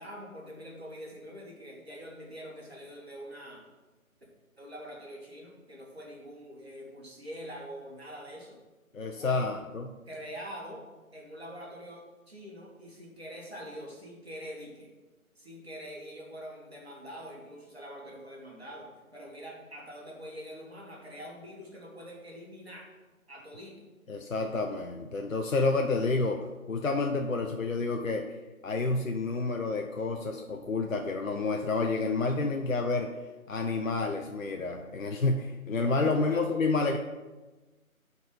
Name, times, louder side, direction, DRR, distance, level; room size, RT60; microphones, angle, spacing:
voice 1, 0.0-3.7 4.6-8.6 9.2-9.5 10.1-10.8 11.1-14.9 15.4-22.9 23.3-23.8 36.3-36.4, equal, 45° right, -3 dB, 1.9 m, -44 dB
voice 2, 8.9-9.9 24.1-28.3 28.6-33.1 33.5-37.0, left 3 dB, 65° left, 4 dB, 0.6 m, -29 dB
6.9 x 4.1 x 5.4 m, 1.2 s
figure-of-eight pair, 165°, 43 cm